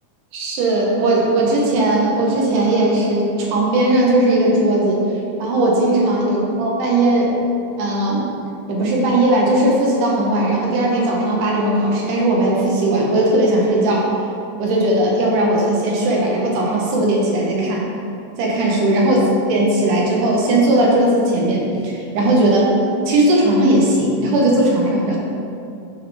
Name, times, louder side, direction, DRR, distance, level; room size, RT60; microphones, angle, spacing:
voice 1, 0.3-5.0 5.4-7.3 7.8-8.3 8.7-14.1 14.6-17.9 18.4-19.2 19.5-22.7 23.1-25.2, right 1 dB, 85° right, -3 dB, 2.6 m, -17 dB
9.2 x 4.0 x 3.4 m, 2.6 s
omnidirectional pair, 3.6 m